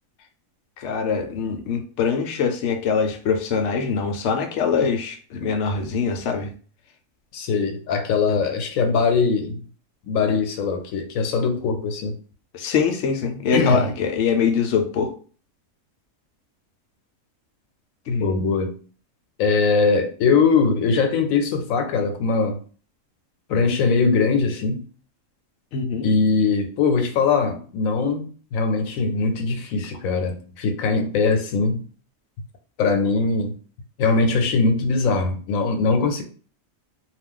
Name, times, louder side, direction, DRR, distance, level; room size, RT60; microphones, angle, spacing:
voice 1, 0.8-6.5 8.3-8.4 12.5-15.1 18.1-18.3 25.7-26.1, left 5 dB, 65° left, 0.8 m, -23 dB
voice 2, 7.3-9.6 10.1-12.2 13.5-13.9 18.2-18.7 19.4-22.6 23.5-24.8 26.0-31.8 32.8-33.5 34.0-36.2, left 4 dB, 85° left, 1.0 m, -21 dB
2.3 x 2.2 x 3.6 m
omnidirectional pair, 1.4 m